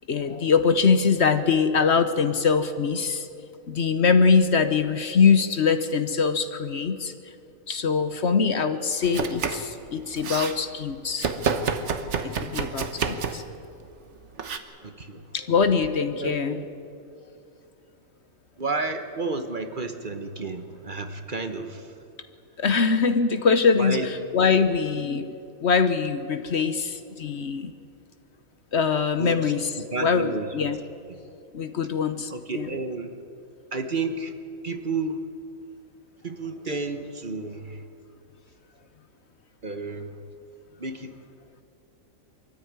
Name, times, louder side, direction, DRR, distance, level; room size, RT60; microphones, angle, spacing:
voice 1, 0.1-3.3 3.7-7.1 7.7-11.3 12.2-13.4 15.3-16.6 22.6-25.3 25.6-27.7 28.7-29.7 30.0-30.8 31.5-32.7, left 5 dB, 55° left, 10 dB, 1.2 m, -23 dB
Domestic sounds home sounds, 9.0-9.7 10.0-10.6 11.2-13.5 14.4-14.6, right 5 dB, 60° right, 1.4 m, -28 dB
voice 2, 14.8-15.3 16.2-16.7 18.6-22.0 23.7-24.1 29.2-30.7 31.1-31.2 32.3-33.2 33.7-34.3 34.6-35.2 36.2-37.8 39.6-40.2 40.8-41.2, right 3 dB, 40° right, 7 dB, 1.2 m, -31 dB
24.0 x 14.0 x 9.6 m, 2.5 s
omnidirectional pair, 1.4 m